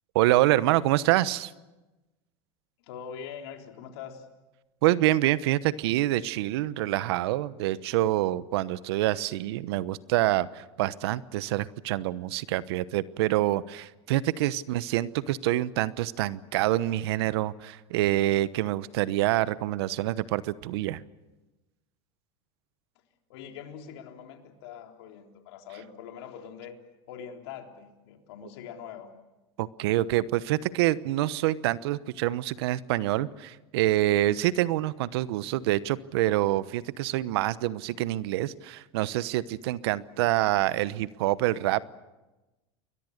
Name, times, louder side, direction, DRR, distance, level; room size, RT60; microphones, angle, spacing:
voice 1, 0.1-1.5 4.8-21.0 29.6-42.0, right 15 dB, 75° right, 17 dB, 1.0 m, -26 dB
voice 2, 2.8-4.3 23.3-26.8 27.1-29.1, left 8 dB, 75° left, 3 dB, 3.8 m, -43 dB
29.5 x 22.5 x 6.6 m, 1.1 s
hypercardioid pair, 105°, 14 cm